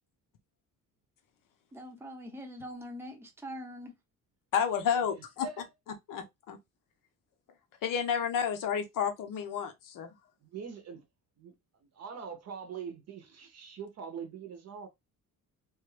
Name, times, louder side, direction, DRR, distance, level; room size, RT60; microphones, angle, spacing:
voice 1, 1.7-4.0, equal, 5° right, 0.6 m, -43 dB
voice 2, 4.5-5.5 6.1-6.6 7.8-10.1, left 7 dB, 70° left, 0.7 m, -31 dB
voice 3, 10.4-11.0 11.4-11.5 11.9-14.9, right 6 dB, 50° right, 0.6 m, -43 dB
3.1 x 2.3 x 3.1 m
cardioid pair, 175°, 34 cm